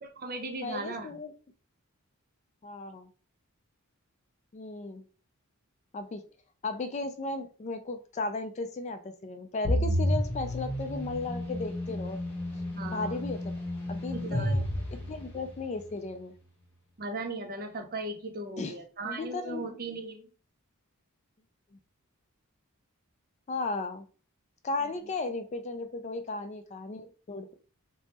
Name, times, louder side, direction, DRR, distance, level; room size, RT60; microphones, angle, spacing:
voice 1, 0.0-1.1 12.8-13.1 14.1-14.8 17.0-20.3, right 2 dB, 40° right, 0.6 m, -37 dB
voice 2, 0.6-1.3 2.6-3.1 4.5-5.0 5.9-6.2 6.6-12.2 12.9-13.6 13.9-14.6 14.9-16.3 18.6-18.7 19.0-19.6 23.5-24.1 24.6-27.5, left 3 dB, 30° left, 0.3 m, -35 dB
sound 1, 9.6-15.6, equal, 10° left, 1.1 m, -31 dB
3.3 x 2.0 x 4.1 m
head